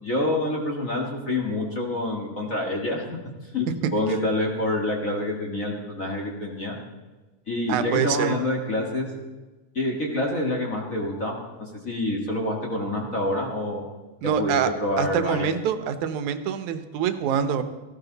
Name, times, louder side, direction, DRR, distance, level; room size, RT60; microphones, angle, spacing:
voice 1, 0.0-3.0 3.5-6.8 7.5-9.1 9.8-13.8 14.4-15.5, left 1 dB, 30° left, 0 dB, 1.9 m, -27 dB
voice 2, 7.7-8.4 14.2-14.7 15.0-17.6, right 8 dB, 85° right, 10 dB, 2.3 m, -25 dB
17.5 x 15.0 x 4.0 m, 1.2 s
omnidirectional pair, 3.3 m